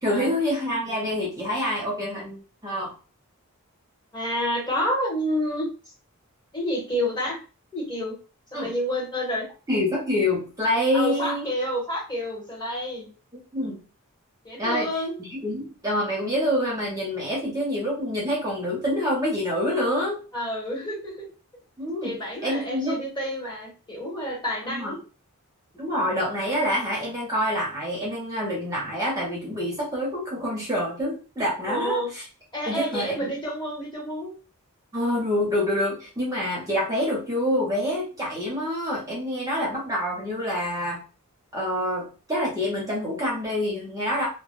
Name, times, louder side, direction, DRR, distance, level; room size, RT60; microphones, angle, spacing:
voice 1, 0.0-2.9 8.5-8.7 9.7-11.5 13.5-13.8 14.6-14.9 15.2-20.2 21.8-22.1 22.4-23.0 24.6-24.9 25.8-32.2 32.7-33.3 34.9-41.0 41.5-44.3, left 1 dB, 15° right, -4 dB, 0.6 m, -26 dB
voice 2, 4.1-5.7 6.5-7.4 7.7-8.2 8.5-9.5 10.9-13.1 14.4-15.2 20.3-21.3 22.0-25.0 31.7-32.1 32.5-34.3, equal, 20° left, -5 dB, 1.1 m, -29 dB
2.1 x 2.1 x 3.0 m, 0.35 s
head